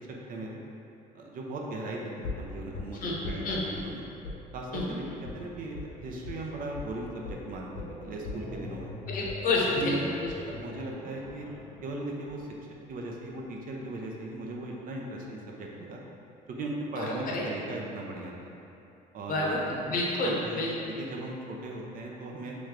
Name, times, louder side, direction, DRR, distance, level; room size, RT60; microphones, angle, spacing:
voice 1, 1.1-4.0 4.5-5.0 5.3-7.7 8.0-8.9 9.8-10.1 10.5-11.5 11.8-12.5 12.9-16.0 16.5-18.5 19.1-19.8 20.2-22.5, right 2 dB, 55° right, -1 dB, 0.6 m, -38 dB
sound 1, 2.2-3.9 4.2-4.4 4.7-4.9 5.2-5.4 5.7-5.9 6.2-6.4 6.7-6.9 7.2-13.2 13.5-13.6, left 3 dB, 90° left, 1.1 m, -41 dB
voice 2, 9.1-10.0 17.0-17.4 19.3-21.0, left 2 dB, 55° left, -3 dB, 0.8 m, -29 dB
3.2 x 3.0 x 3.7 m, 2.7 s
cardioid pair, 110°, 17 cm